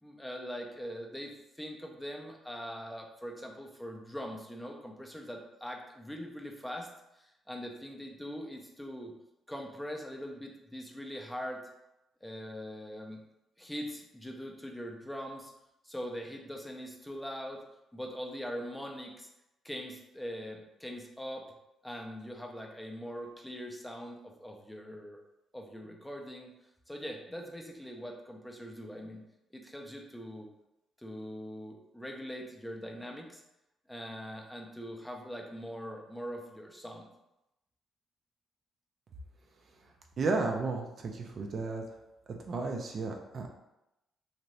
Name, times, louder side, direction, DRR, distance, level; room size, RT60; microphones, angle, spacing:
voice 1, 0.0-6.9 7.1-9.1 9.5-11.6 12.2-13.2 13.6-15.5 15.8-17.6 17.9-19.3 19.6-21.5 21.8-25.2 25.5-26.5 26.9-29.2 29.5-30.5 31.0-33.4 33.9-37.1, equal, 5° left, 1 dB, 0.5 m, -42 dB
voice 2, 40.2-41.8 42.3-43.5, right 3 dB, 50° right, 3 dB, 0.4 m, -33 dB
2.7 x 2.5 x 3.1 m, 0.88 s
cardioid pair, 90°, 0 cm